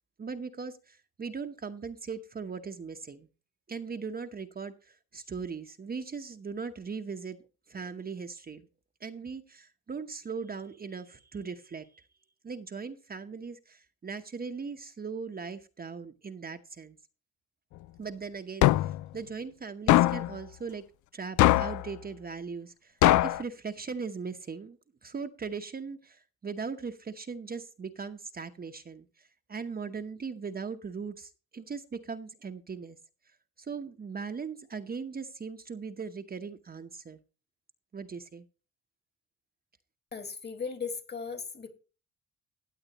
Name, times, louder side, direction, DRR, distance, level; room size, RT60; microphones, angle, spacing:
voice 1, 0.2-3.3 3.7-7.4 7.7-8.7 9.0-12.0 12.4-17.0 18.0-20.8 21.1-22.9 23.2-33.0 33.6-37.2 37.9-38.4, right 5 dB, 30° right, 0.9 m, -39 dB
sound 1, 18.6-19.0 19.9-20.3 21.4-21.8 23.0-23.4, left 15 dB, 75° left, 0.5 m, -21 dB
voice 2, 40.1-41.7, left 5 dB, 35° left, 2.0 m, -37 dB
16.0 x 8.8 x 3.0 m
cardioid pair, 90°, 30 cm